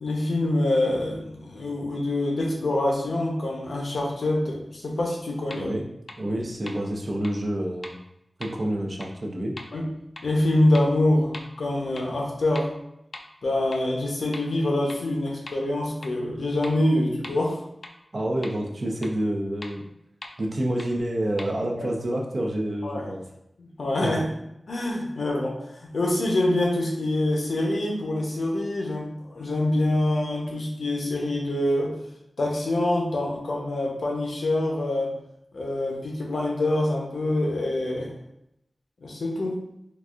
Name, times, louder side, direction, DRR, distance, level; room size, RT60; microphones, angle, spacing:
voice 1, 0.0-5.7 9.7-9.9 10.2-12.7 13.4-17.6 21.8-21.9 22.8-23.1 23.6-24.3 24.7-25.6 25.8-32.0 32.4-35.1 35.5-38.1 39.0-39.6, left 1 dB, 85° left, -1 dB, 0.7 m, -25 dB
sound 1, 5.5-5.6 6.1-6.2 6.7-6.8 7.2-7.3 7.8-7.9 8.4-8.5 9.0-9.1 9.6-9.7 10.2-10.3 10.7-10.8 11.3-11.4 12.0-12.1 12.5-12.6 13.1-13.2 13.7-13.8 14.3-14.4 14.9-15.0 15.5-15.6 16.0-16.1 16.6-16.7 17.2-17.3 17.8-17.9 18.4-18.5 19.0-19.1 19.6-19.7 20.2-20.3 20.8-20.9 21.4-21.5, left 2 dB, 55° left, 0.3 m, -39 dB
voice 2, 5.5-5.8 6.2-7.9 8.4-9.6 18.1-19.9 20.4-23.2 24.0-24.1, right 1 dB, 50° right, -1 dB, 0.6 m, -28 dB
3.9 x 2.4 x 2.4 m, 0.81 s
wide cardioid pair, 95°, 0 cm